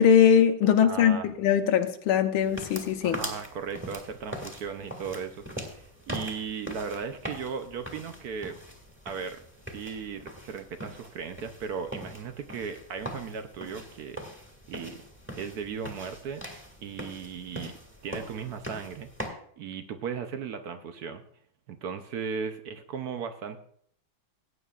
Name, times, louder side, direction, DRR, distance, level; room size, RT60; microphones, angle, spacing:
voice 1, 0.0-3.2, left 8 dB, 85° left, 6 dB, 1.7 m, -21 dB
voice 2, 0.7-1.3 3.0-8.6 9.0-9.4 9.7-14.4 14.7-15.0 15.4-16.4 16.8-17.7 18.0-19.1 19.6-21.2 21.7-23.6, right 6 dB, 65° right, 8 dB, 1.0 m, -36 dB
sound 1, 2.4-19.3, equal, 5° right, 1.6 m, -42 dB
19.0 x 8.9 x 2.4 m, 0.66 s
omnidirectional pair, 2.3 m